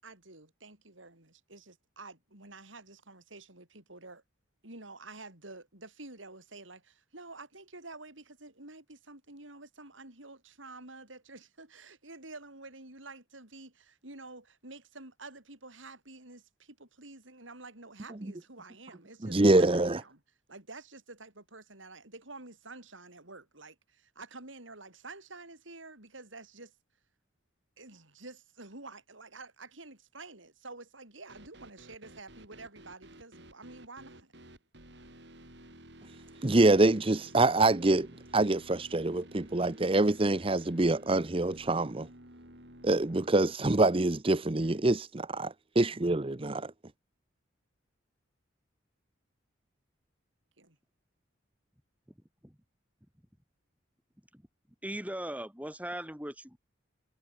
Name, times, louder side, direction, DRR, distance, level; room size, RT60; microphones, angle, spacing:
voice 1, 0.0-4.2 4.6-20.2 20.5-26.7 27.8-34.3 44.6-44.8 50.6-50.8, right 3 dB, 85° right, 7.9 m, -49 dB
voice 2, 19.2-20.0 36.4-38.1 38.3-42.1 42.8-46.7, right 2 dB, 30° right, 0.8 m, -25 dB
sound 1, 31.3-43.6, right 1 dB, 60° right, 6.4 m, -53 dB
voice 3, 54.8-56.6, right 1 dB, 10° right, 4.0 m, -39 dB
head